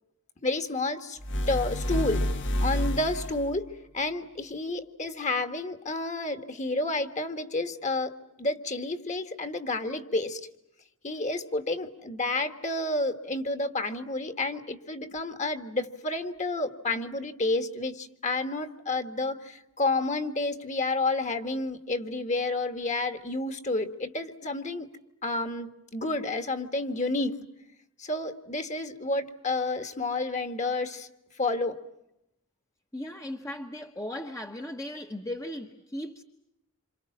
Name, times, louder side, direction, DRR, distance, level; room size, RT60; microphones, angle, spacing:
voice 1, 0.4-1.2 1.5-2.3 2.6-10.4 11.0-24.9 25.2-27.4 28.0-31.1 31.4-31.8, left 2 dB, 35° left, 8 dB, 1.8 m, -30 dB
sound 1, 1.2-3.6, equal, 55° left, 1.4 m, -29 dB
voice 2, 32.9-36.2, left 1 dB, 15° left, 3 dB, 1.2 m, -37 dB
28.0 x 27.5 x 7.4 m, 0.83 s
head